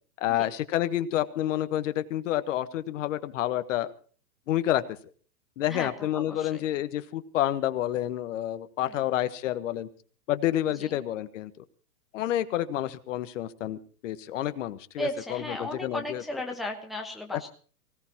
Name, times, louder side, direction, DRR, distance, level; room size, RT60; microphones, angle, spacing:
voice 1, 0.2-3.9 4.5-4.8 5.6-9.9 10.3-11.5 12.1-16.2 17.3-17.5, left 13 dB, 50° left, 12 dB, 1.3 m, -29 dB
voice 2, 5.7-6.6 8.8-9.0 10.7-11.0 15.0-17.5, left 1 dB, ahead, 2 dB, 1.1 m, -36 dB
24.0 x 17.0 x 2.9 m, 0.42 s
hypercardioid pair, 130°, 49 cm